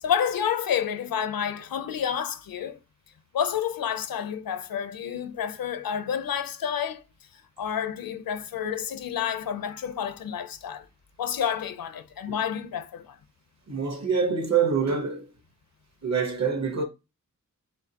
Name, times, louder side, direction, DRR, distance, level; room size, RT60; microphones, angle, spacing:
voice 1, 0.0-2.8 3.3-7.0 7.6-10.8 11.2-13.2, left 8 dB, 75° left, 0.7 m, -29 dB
voice 2, 13.7-15.3 16.0-16.8, right 6 dB, 50° right, 1.1 m, -25 dB
4.3 x 3.9 x 2.8 m
wide cardioid pair, 155°, 35 cm